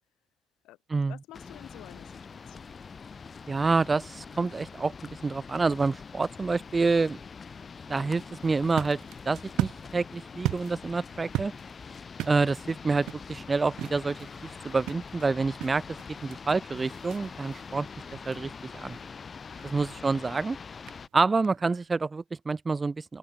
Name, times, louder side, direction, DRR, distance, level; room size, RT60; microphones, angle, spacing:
voice 1, 0.6-2.8, left 16 dB, 80° left, 3.7 m, -51 dB
sound 1, 1.3-21.1, left 5 dB, 40° left, 1.9 m, -44 dB
voice 2, 3.5-4.9 5.2-7.2 7.9-9.0 9.3-11.5 12.3-14.2 14.6-15.8 16.2-17.9 18.3-19.0 19.6-20.6 21.1-23.2, right 4 dB, 25° right, 0.4 m, -27 dB
sound 2, 8.4-21.9, right 15 dB, 75° right, 0.9 m, -39 dB
open air
supercardioid pair, 75°, 0 cm